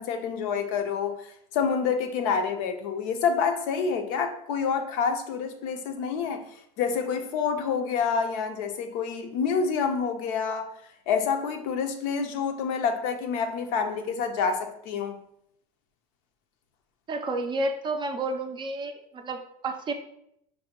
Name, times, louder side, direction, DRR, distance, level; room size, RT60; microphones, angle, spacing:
voice 1, 0.0-6.4 6.8-10.7 11.1-15.2, left 6 dB, 75° left, 6 dB, 0.5 m, -28 dB
voice 2, 17.1-19.9, right 2 dB, 25° right, 6 dB, 0.4 m, -31 dB
5.2 x 2.1 x 2.8 m, 0.73 s
supercardioid pair, 115°, 18 cm